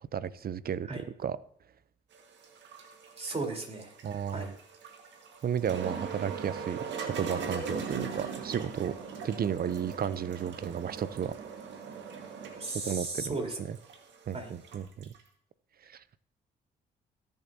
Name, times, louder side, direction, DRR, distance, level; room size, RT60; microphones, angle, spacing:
voice 1, 0.0-1.4 4.0-4.5 5.4-8.9 9.2-11.3 12.8-13.4 13.7-13.8 14.3-15.1 15.9-16.0, right 8 dB, 50° right, 17 dB, 0.7 m, -33 dB
sound 1, 2.1-15.2, right 5 dB, 70° right, 1.8 m, -40 dB
voice 2, 3.2-3.9 4.3-4.5 12.5-13.6 14.3-14.5, right 3 dB, 30° right, 1 dB, 4.0 m, -35 dB
18.0 x 7.2 x 2.8 m, 0.66 s
supercardioid pair, 50°, 19 cm